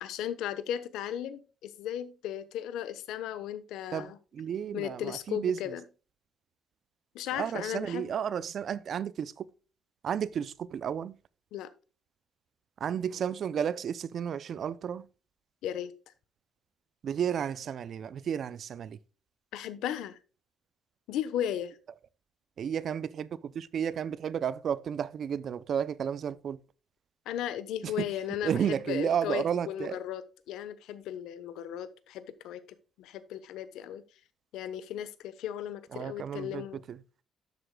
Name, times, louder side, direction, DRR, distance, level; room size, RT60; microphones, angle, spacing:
voice 1, 0.0-4.2 4.7-5.8 7.1-8.1 11.5-11.7 15.6-15.9 19.5-20.2 21.1-21.8 27.2-32.6 33.0-34.0 34.5-36.8, left 10 dB, 85° left, 1.0 m, -36 dB
voice 2, 3.9-5.7 7.3-9.5 10.0-11.2 12.8-15.1 17.0-19.0 22.6-26.6 27.8-28.1 28.4-30.0 35.9-37.0, right 8 dB, 45° right, 0.5 m, -32 dB
12.0 x 8.0 x 2.3 m
cardioid pair, 150°, 0 cm